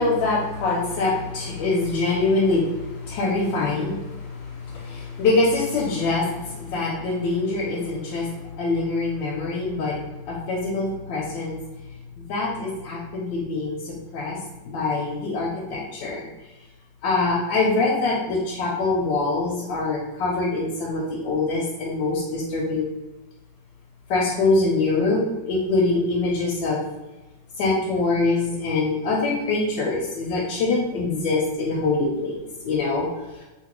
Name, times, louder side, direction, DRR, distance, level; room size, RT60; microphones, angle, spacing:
voice 1, 0.0-10.0 10.3-11.6 12.2-14.4 14.6-16.3 17.0-22.9 24.1-25.2 25.5-26.8 27.6-32.4 32.6-33.1, left 3 dB, 85° left, -2 dB, 1.3 m, -24 dB
2.9 x 2.8 x 2.9 m, 1.1 s
omnidirectional pair, 2.0 m